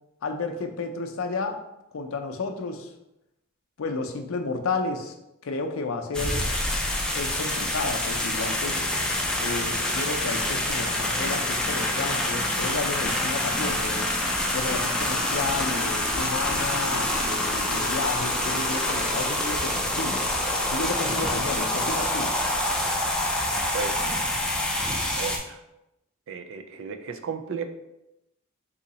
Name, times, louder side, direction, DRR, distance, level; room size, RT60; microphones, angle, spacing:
voice 1, 0.2-1.6 1.9-2.9 3.8-5.1 5.4-6.5 7.1-8.8 9.4-14.1 14.5-20.2 20.7-22.3, left 3 dB, 70° left, 5 dB, 0.5 m, -32 dB
sound 1, 6.1-25.4, left 1 dB, 5° left, 0.5 m, -26 dB
voice 2, 23.7-24.2 25.0-25.6 26.3-27.6, right 5 dB, 65° right, 8 dB, 0.4 m, -34 dB
3.8 x 2.8 x 4.0 m, 0.89 s
head